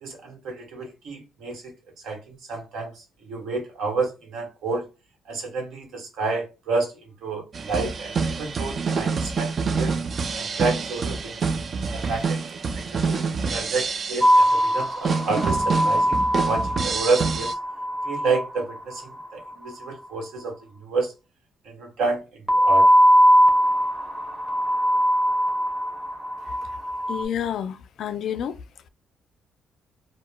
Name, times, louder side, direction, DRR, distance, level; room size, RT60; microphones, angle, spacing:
voice 1, 0.0-1.7 2.0-4.9 5.3-6.9 7.2-9.9 10.3-11.4 11.9-13.2 13.5-17.5 18.0-20.6 20.8-21.1 21.6-22.2 22.5-22.9, right 3 dB, 80° right, 1.2 m, -29 dB
sound 1, 7.5-17.5, right 5 dB, 45° right, 0.3 m, -27 dB
sound 2, 14.2-19.5 22.5-27.2, equal, 10° right, 0.8 m, -21 dB
voice 2, 27.1-28.6, left 9 dB, 70° left, 0.3 m, -29 dB
2.9 x 2.1 x 2.2 m
cardioid pair, 90°, 0 cm